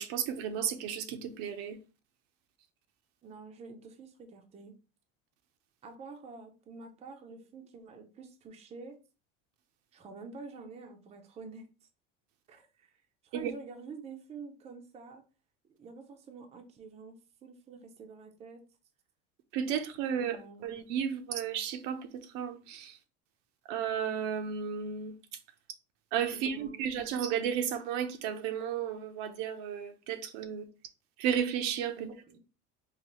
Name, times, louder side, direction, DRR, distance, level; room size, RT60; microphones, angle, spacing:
voice 1, 0.0-1.8 13.3-13.5 19.5-20.4 20.6-22.1 22.3-23.0 23.7-25.1 26.1-30.7 31.2-32.1, right 8 dB, 70° right, 0.7 m, -33 dB
voice 2, 3.2-4.8 5.8-9.0 9.9-11.7 12.5-12.9 13.2-15.2 15.7-18.6 20.2-20.8 26.3-27.0 32.0-32.4, right 4 dB, 20° right, 0.5 m, -48 dB
3.9 x 2.5 x 3.0 m
cardioid pair, 140°, 30 cm